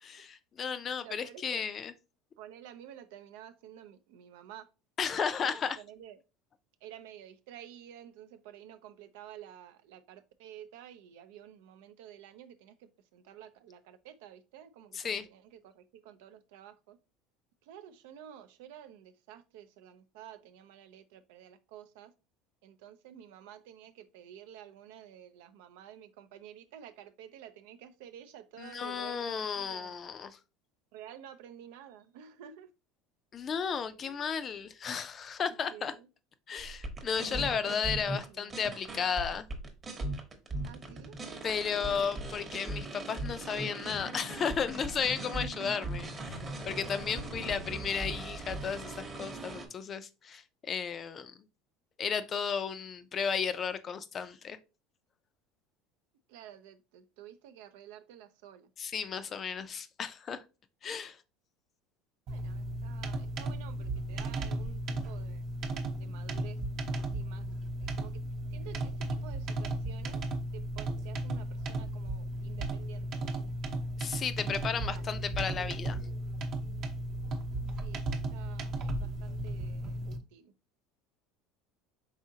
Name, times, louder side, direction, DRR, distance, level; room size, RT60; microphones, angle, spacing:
voice 1, 0.0-1.9 5.0-5.8 14.9-15.3 28.6-30.4 33.3-36.0 36.5-39.5 41.4-46.4 46.7-51.3 52.0-54.6 58.8-60.4 60.8-61.2 74.0-76.0, left 6 dB, 30° left, 0.4 m, -34 dB
voice 2, 1.0-1.6 2.4-4.7 5.4-6.2 6.8-17.0 17.6-22.1 22.6-29.9 30.9-32.7 34.0-34.4 35.5-36.1 37.3-38.6 40.6-41.2 45.4-45.7 47.1-47.6 56.3-58.7 62.3-65.5 65.9-66.6 66.9-67.5 67.8-68.2 68.5-70.2 70.5-73.2 74.6-75.1 77.8-80.5, right 10 dB, 85° right, 0.5 m, -51 dB
sound 1, 36.6-49.7, right 2 dB, 20° right, 0.9 m, -39 dB
sound 2, 62.3-80.2, right 1 dB, 45° right, 0.8 m, -35 dB
4.8 x 3.6 x 2.7 m
cardioid pair, 145°, 0 cm